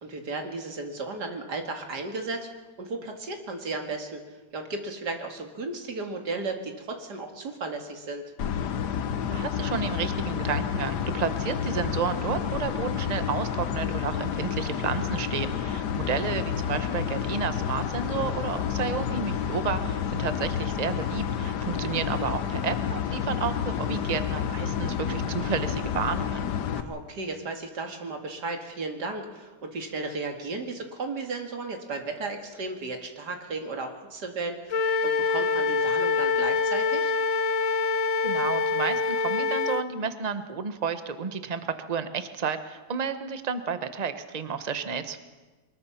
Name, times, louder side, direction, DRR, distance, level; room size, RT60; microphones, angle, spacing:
voice 1, 0.0-2.5 2.8-4.2 4.5-8.3 26.8-37.1, right 3 dB, 90° right, 4 dB, 2.7 m, -34 dB
sound 1, 8.4-26.8, left 8 dB, 90° left, 1.5 m, -30 dB
voice 2, 9.3-26.5 38.2-41.6 41.9-45.2, right 6 dB, 30° right, 10 dB, 1.0 m, -31 dB
Wind instrument woodwind instrument, 34.7-39.9, left 4 dB, 60° left, 1.1 m, -25 dB
23.0 x 20.5 x 5.8 m, 1.3 s
omnidirectional pair, 1.7 m